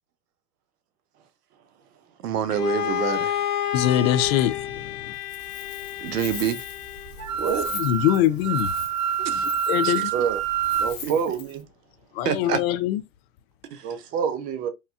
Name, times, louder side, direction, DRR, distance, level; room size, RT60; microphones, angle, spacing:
voice 1, 2.2-3.4 6.0-6.6 9.2-9.4 9.8-9.9 11.0-11.1 12.2-12.6 13.7-13.9, right 8 dB, 85° right, 0.8 m, -27 dB
Bowed string instrument, 2.5-7.3, left 11 dB, 80° left, 0.8 m, -30 dB
voice 2, 3.7-5.1 7.7-8.7 9.3-10.1 12.1-13.0, left 12 dB, 45° left, 0.5 m, -23 dB
Wind, 5.1-11.6, left 6 dB, 25° left, 1.0 m, -41 dB
Wind instrument woodwind instrument, 7.2-10.9, right 7 dB, 60° right, 1.2 m, -26 dB
voice 3, 7.4-7.7 10.1-10.4 10.8-11.7 13.8-14.7, right 7 dB, 20° right, 0.4 m, -26 dB
4.2 x 2.2 x 2.3 m
hypercardioid pair, 115°, 45 cm